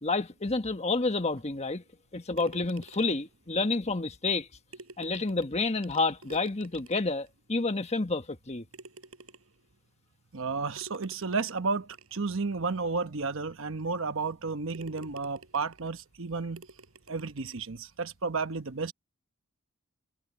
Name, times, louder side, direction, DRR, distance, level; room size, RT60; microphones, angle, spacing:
voice 1, 0.0-1.8 2.1-4.5 5.0-8.6, left 3 dB, 30° left, 1.4 m, -29 dB
sound 1, 2.4-3.3 4.4-4.5 4.7-7.3 7.9-8.0 8.7-9.7 10.8-12.3 13.0-13.1 13.6-13.7 14.2-14.4 14.7-16.0 16.6-17.7, right 3 dB, 80° right, 6.7 m, -51 dB
voice 2, 10.3-16.6 17.1-18.9, right 4 dB, 65° right, 1.0 m, -32 dB
head